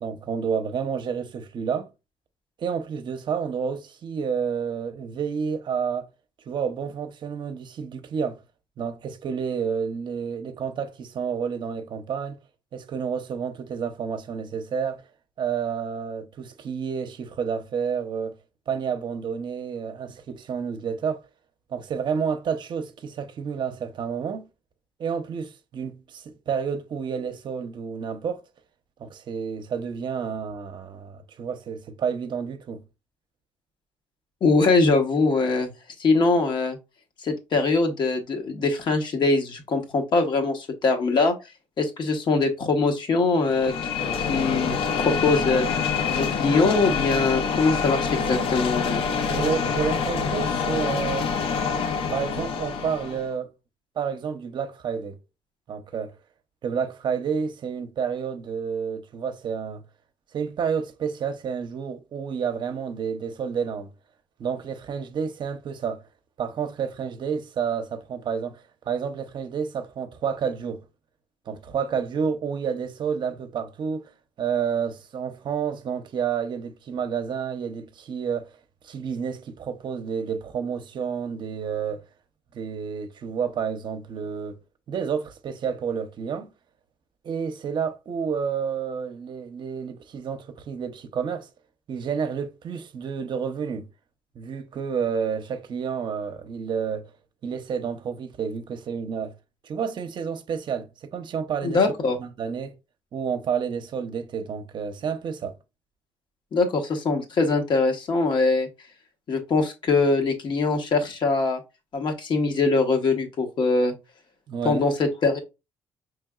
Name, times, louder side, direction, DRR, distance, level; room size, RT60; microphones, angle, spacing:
voice 1, 0.0-1.9 2.6-6.1 6.5-8.4 8.8-12.4 12.7-15.0 15.4-18.4 18.7-21.2 21.7-24.5 25.0-28.4 29.0-32.8 49.3-51.3 52.1-53.5 54.0-55.2 55.7-56.2 56.6-59.8 60.3-63.9 64.4-66.0 66.4-70.8 71.5-74.1 74.4-78.5 78.8-82.0 82.5-84.6 84.9-86.5 87.2-91.5 91.9-93.9 94.4-97.1 97.4-99.3 99.6-101.8 102.2-102.7 103.1-105.6 114.5-114.9, right 6 dB, 55° right, 0.6 m, -30 dB
voice 2, 34.4-35.7 36.0-36.8 37.2-41.3 41.8-43.7 44.3-45.7 46.1-49.0 101.6-102.2 106.5-108.7 109.3-111.6 111.9-113.9 114.6-115.4, left 3 dB, 55° left, 1.0 m, -22 dB
sound 1, 43.4-53.3, left 6 dB, 75° left, 0.6 m, -26 dB
4.5 x 3.2 x 2.3 m
cardioid pair, 80°, 9 cm